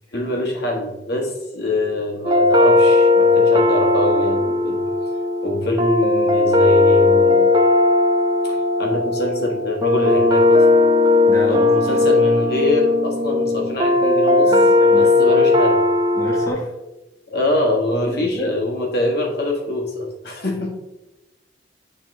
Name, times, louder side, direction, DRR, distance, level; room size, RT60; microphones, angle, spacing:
voice 1, 0.1-4.8 5.4-7.5 8.4-10.6 11.5-14.6 14.9-15.8 17.3-20.7, left 1 dB, 60° left, 0 dB, 1.5 m, -24 dB
sound 1, 2.2-16.5, left 2 dB, 25° right, 0.5 m, -16 dB
voice 2, 11.3-12.1 14.4-15.4 16.1-16.7 18.0-18.5, left 1 dB, 20° left, -2 dB, 1.0 m, -29 dB
10.0 x 4.1 x 3.2 m, 1.0 s
head